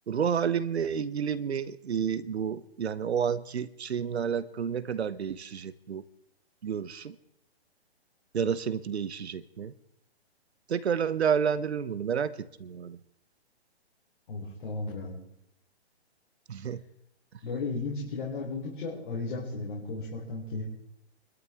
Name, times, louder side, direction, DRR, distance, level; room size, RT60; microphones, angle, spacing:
voice 1, 0.1-6.0 6.6-7.2 8.3-9.7 10.7-13.0 16.5-16.8, right 7 dB, 75° right, 16 dB, 1.0 m, -30 dB
voice 2, 14.3-15.2 17.4-20.6, left 3 dB, 50° left, -4 dB, 3.7 m, -35 dB
26.0 x 13.0 x 3.6 m, 0.80 s
hypercardioid pair, 140°, 33 cm